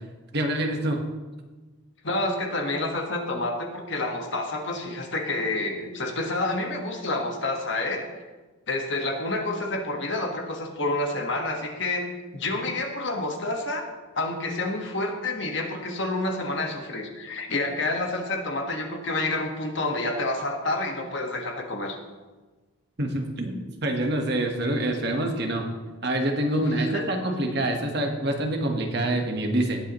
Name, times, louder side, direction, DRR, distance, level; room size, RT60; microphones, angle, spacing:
voice 1, 0.3-1.0 23.0-25.6 26.0-29.8, right 1 dB, 50° right, 3 dB, 1.4 m, -26 dB
voice 2, 2.0-8.0 8.7-12.1 12.3-13.8 14.1-22.0 26.7-27.1, left 2 dB, 55° left, 2 dB, 1.5 m, -28 dB
19.0 x 7.8 x 3.1 m, 1.3 s
head